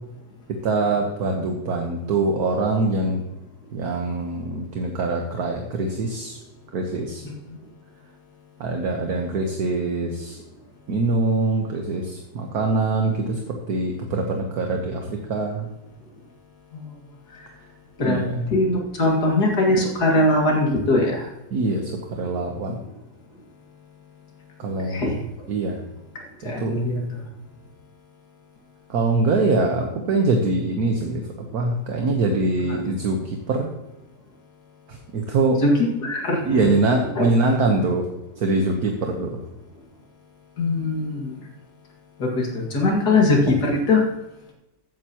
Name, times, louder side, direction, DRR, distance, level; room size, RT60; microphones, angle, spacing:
voice 1, 0.5-3.2 3.7-6.4 6.7-7.2 8.6-10.4 10.9-15.7 18.0-18.5 21.5-21.9 22.2-22.8 24.6-25.1 25.5-25.8 26.4-26.7 28.9-31.2 31.5-33.7 34.9-35.6 36.4-38.1 38.4-39.4, right 3 dB, 60° right, 2 dB, 1.5 m, -23 dB
voice 2, 18.5-21.2 24.9-25.2 26.4-27.0 35.6-35.7 36.0-36.6 37.2-37.3 40.6-41.3 42.2-44.0, left 2 dB, 60° left, -1 dB, 2.6 m, -21 dB
14.0 x 9.3 x 3.0 m, 0.94 s
omnidirectional pair, 2.0 m